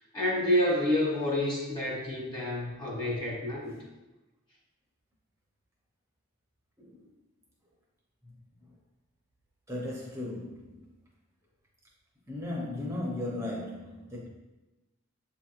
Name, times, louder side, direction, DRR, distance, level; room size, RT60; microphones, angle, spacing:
voice 1, 0.1-3.7, left 1 dB, 25° left, -4 dB, 1.4 m, -28 dB
voice 2, 6.8-7.1 9.7-10.9 12.3-14.3, left 1 dB, 15° right, -4 dB, 0.7 m, -36 dB
7.2 x 2.9 x 2.5 m, 1.1 s
head